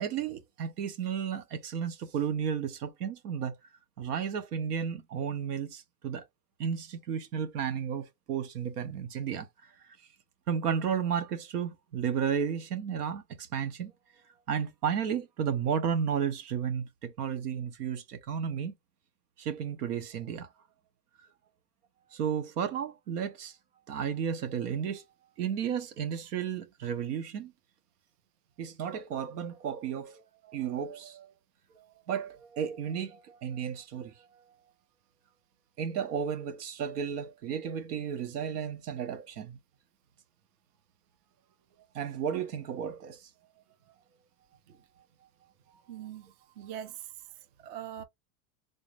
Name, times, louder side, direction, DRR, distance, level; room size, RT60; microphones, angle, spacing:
voice 1, 0.0-3.5 4.0-6.2 6.6-9.5 10.5-13.9 14.5-18.7 19.4-20.5 22.1-23.5 23.9-25.0 25.4-27.5 28.6-31.3 31.7-34.1 35.8-39.6 41.9-43.2, right 7 dB, 90° right, 1.3 m, -33 dB
voice 2, 45.7-47.1 47.6-48.0, right 10 dB, 30° right, 0.4 m, -42 dB
4.0 x 2.5 x 3.3 m
supercardioid pair, 165°, 45 cm